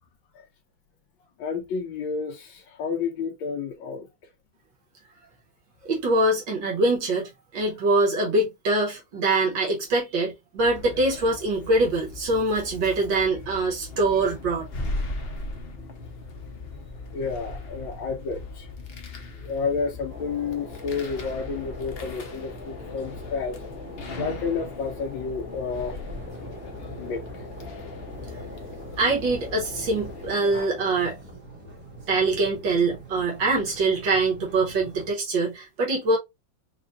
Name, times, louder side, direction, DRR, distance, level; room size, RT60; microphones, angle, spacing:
voice 1, 1.4-4.1 16.7-16.8 17.1-18.7 19.4-23.6 24.2-26.0 27.0-27.5 30.5-30.7, left 5 dB, 85° left, 1.5 m, -30 dB
voice 2, 5.9-14.7 29.0-31.2 32.1-36.2, right 2 dB, 75° right, 1.8 m, -24 dB
sound 1, 10.6-30.3, left 2 dB, 50° left, 0.7 m, -39 dB
sound 2, 20.1-31.0, left 2 dB, 15° left, 1.0 m, -42 dB
sound 3, 26.0-35.1, right 2 dB, 5° right, 1.2 m, -45 dB
5.0 x 2.5 x 2.5 m
omnidirectional pair, 2.1 m